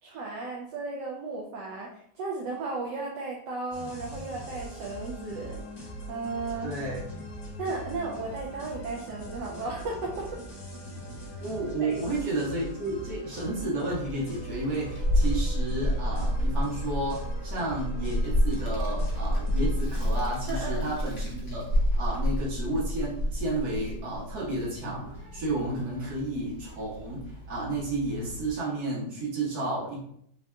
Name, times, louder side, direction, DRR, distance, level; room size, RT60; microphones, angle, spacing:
voice 1, 0.0-5.6 6.1-6.7 7.6-10.4 11.8-12.0 20.5-20.9, right 3 dB, 80° right, -2 dB, 1.2 m, -35 dB
sound 1, 3.7-20.3, right 1 dB, 40° left, 0.8 m, -41 dB
voice 2, 6.6-7.0 11.4-21.7 22.0-30.0, right 2 dB, 65° right, -5 dB, 1.6 m, -32 dB
Child speech kid speaking, 14.1-28.5, equal, 60° left, 0.3 m, -30 dB
3.6 x 2.7 x 2.2 m, 0.71 s
omnidirectional pair, 1.8 m